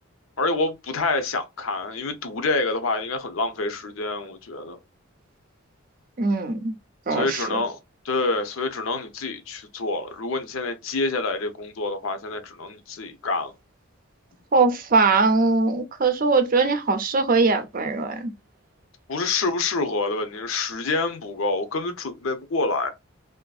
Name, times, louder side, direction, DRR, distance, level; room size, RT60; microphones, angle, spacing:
voice 1, 0.4-4.8 7.1-7.8 8.0-13.5 19.1-22.9, left 3 dB, 75° left, 0.6 m, -27 dB
voice 2, 6.2-6.8 7.1-7.6 14.5-18.3, right 3 dB, 40° right, 0.5 m, -21 dB
2.6 x 2.5 x 2.3 m
head